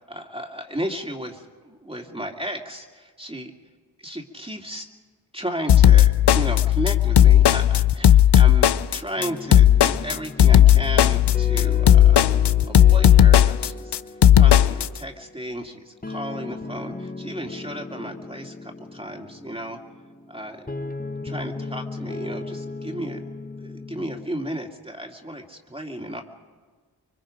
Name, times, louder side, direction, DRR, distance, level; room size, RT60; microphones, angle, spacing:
voice 1, 0.0-3.5 4.0-4.9 5.3-12.2 12.6-19.8 20.3-20.9 21.2-23.2 23.6-26.2, equal, 15° right, 1 dB, 2.4 m, -34 dB
sound 1, 5.7-14.9, left 11 dB, 85° left, 0.6 m, -15 dB
sound 2, 9.2-24.3, left 2 dB, 20° left, 1.2 m, -37 dB
26.0 x 23.5 x 5.2 m, 1.4 s
cardioid pair, 40°, 40 cm